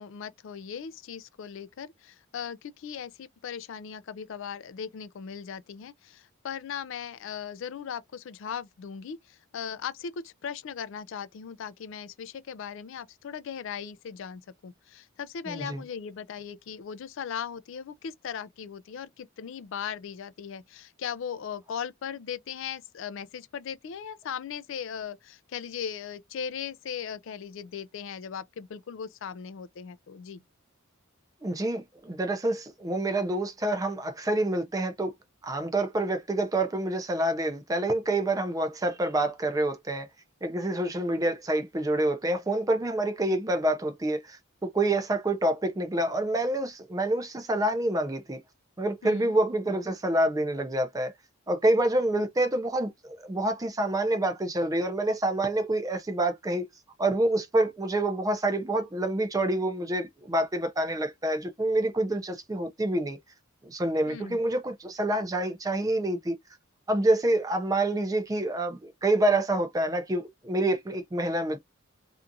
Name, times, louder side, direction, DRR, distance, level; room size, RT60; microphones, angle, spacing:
voice 1, 0.0-30.4 49.0-49.3 64.1-64.4, left 7 dB, 65° left, 0.3 m, -38 dB
voice 2, 15.5-15.8 31.4-35.1 35.4-40.1 40.4-48.4 48.8-51.1 51.5-56.7 57.0-63.2 63.6-66.4 66.9-71.6, right 1 dB, 15° right, 0.4 m, -27 dB
2.5 x 2.4 x 2.6 m
head